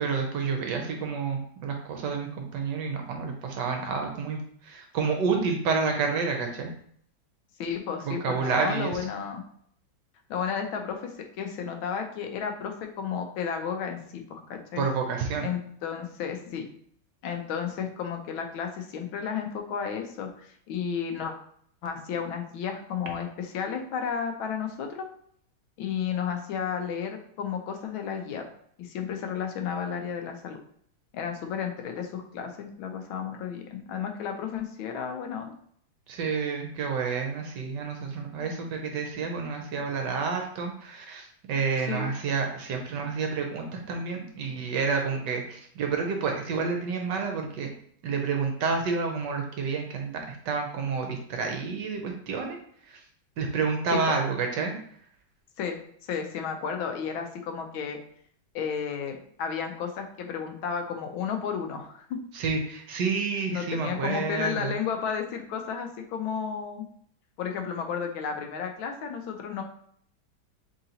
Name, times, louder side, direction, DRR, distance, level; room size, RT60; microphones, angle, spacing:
voice 1, 0.0-6.7 8.1-9.0 14.8-15.5 36.1-47.7 48.0-52.6 52.8-53.0 53.4-54.7 62.3-64.7, right 5 dB, 70° right, 3 dB, 1.2 m, -29 dB
voice 2, 7.6-9.4 10.3-14.8 15.4-16.7 17.2-21.3 21.8-25.1 25.8-28.4 28.8-30.6 31.1-35.5 41.8-42.1 53.9-54.2 55.6-55.8 56.0-58.0 58.5-62.2 63.5-66.9 67.4-69.6, left 7 dB, 80° left, 4 dB, 1.4 m, -32 dB
3.8 x 3.7 x 2.8 m, 0.65 s
omnidirectional pair, 2.2 m